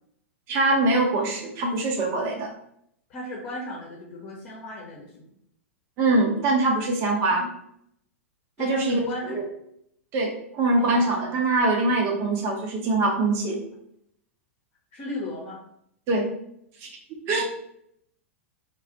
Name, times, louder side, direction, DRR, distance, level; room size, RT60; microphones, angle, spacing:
voice 1, 0.5-2.5 6.0-7.5 8.6-9.4 10.1-13.6 16.1-16.3 16.8-16.9 17.3-17.4, right 2 dB, 35° right, 0 dB, 0.8 m, -23 dB
voice 2, 3.1-5.3 8.6-9.4 10.8-11.5 14.9-15.6 17.3-17.4, left 1 dB, 35° left, -3 dB, 0.8 m, -36 dB
2.4 x 2.3 x 3.8 m, 0.73 s
figure-of-eight pair, 100°, 7 cm